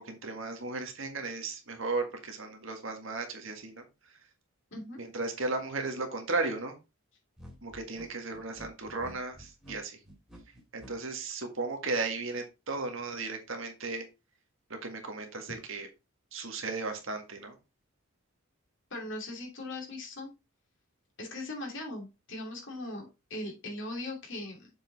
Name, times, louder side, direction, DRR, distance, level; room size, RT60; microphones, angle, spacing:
voice 1, 0.0-3.8 5.0-6.8 7.6-10.0 10.7-14.1 14.8-15.9 16.3-17.5, right 3 dB, 60° right, 5 dB, 1.7 m, -35 dB
sound 1, 7.4-10.9, equal, ahead, 2.6 m, -50 dB
voice 2, 18.9-20.3 21.2-24.7, left 2 dB, 55° left, 1 dB, 2.9 m, -39 dB
7.1 x 5.2 x 4.0 m, 0.26 s
head